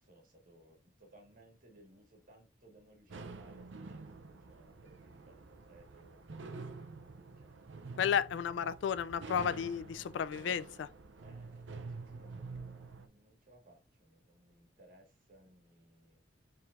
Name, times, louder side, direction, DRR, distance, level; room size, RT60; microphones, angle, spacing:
voice 1, 0.0-7.8 8.4-8.8 11.2-16.2, right 1 dB, 50° right, 1.6 m, -62 dB
sound 1, 3.1-13.1, right 4 dB, 80° right, 0.6 m, -48 dB
voice 2, 8.0-10.9, left 8 dB, 70° left, 0.3 m, -33 dB
4.5 x 3.7 x 2.5 m
head